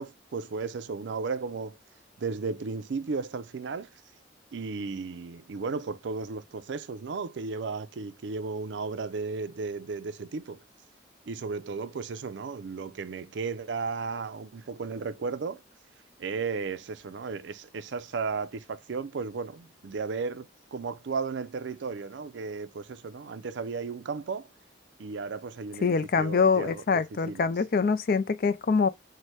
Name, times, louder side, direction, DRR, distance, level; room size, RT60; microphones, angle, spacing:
voice 1, 0.0-1.8 2.2-3.9 4.5-10.6 11.3-15.6 16.2-24.5 25.0-27.5, right 4 dB, 70° right, 0.4 m, -34 dB
voice 2, 25.8-28.9, left 5 dB, 50° left, 0.4 m, -24 dB
5.6 x 2.1 x 3.1 m
head